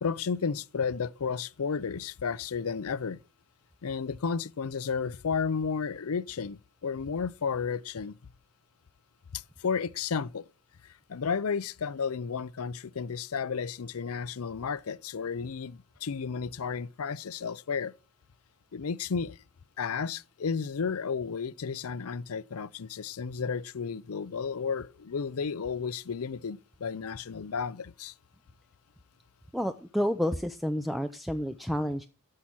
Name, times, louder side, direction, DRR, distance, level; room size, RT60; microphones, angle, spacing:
voice 1, 0.0-3.2 3.8-8.1 9.3-10.5 10.8-17.9 18.7-19.4 19.8-28.1, left 6 dB, 85° left, 0.5 m, -33 dB
voice 2, 29.5-32.1, equal, ahead, 0.5 m, -30 dB
13.0 x 5.7 x 6.2 m
head